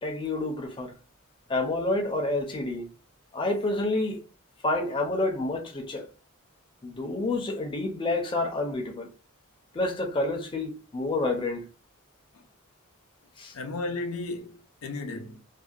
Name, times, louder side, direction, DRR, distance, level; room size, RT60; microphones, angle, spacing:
voice 1, 0.0-0.9 1.5-2.9 3.3-4.2 4.6-6.1 6.8-9.1 9.7-11.7 13.4-13.6, left 2 dB, 25° left, 0.4 m, -29 dB
voice 2, 13.5-15.4, left 2 dB, 80° left, 0.5 m, -34 dB
2.6 x 2.1 x 2.3 m
head